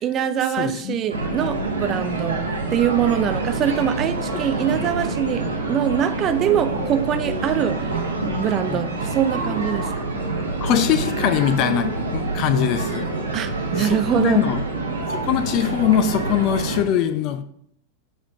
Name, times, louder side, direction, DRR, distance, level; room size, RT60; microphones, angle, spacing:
voice 1, 0.0-2.4 2.7-8.0 8.4-10.1 13.3-14.5, right 9 dB, 30° right, 0.4 m, -23 dB
voice 2, 0.6-1.0 8.7-8.8 10.6-13.1 13.8-14.6 15.1-17.4, left 10 dB, 40° left, 0.5 m, -22 dB
sound 1, 1.1-16.8, right 2 dB, 80° right, 1.1 m, -26 dB
7.1 x 3.6 x 3.7 m
figure-of-eight pair, 90°, 0 cm